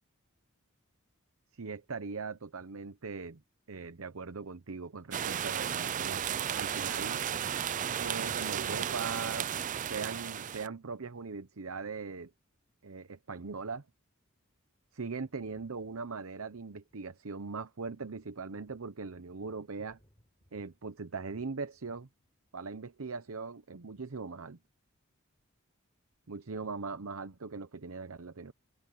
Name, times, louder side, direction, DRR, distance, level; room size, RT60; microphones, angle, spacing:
voice 1, 1.5-3.4 3.7-7.2 8.0-9.5 9.9-12.3 12.8-13.8 14.9-20.0 20.5-22.1 22.5-24.6 26.3-28.5, right 4 dB, 70° right, 0.8 m, -40 dB
rainy day in são paulo (brazil), 5.1-10.7, right 9 dB, 35° right, 0.4 m, -34 dB
Thunder, 15.2-22.6 23.7-23.8, equal, 20° left, 6.1 m, -71 dB
open air
head